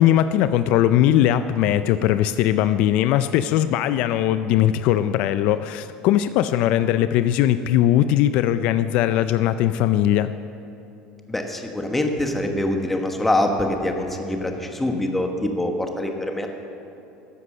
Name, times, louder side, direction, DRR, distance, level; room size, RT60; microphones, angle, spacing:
voice 1, 0.0-10.3, left 12 dB, 60° left, 12 dB, 0.3 m, -20 dB
voice 2, 11.3-16.5, left 1 dB, 10° left, 4 dB, 1.1 m, -24 dB
13.0 x 8.1 x 6.5 m, 2.9 s
cardioid pair, 135°, 2 cm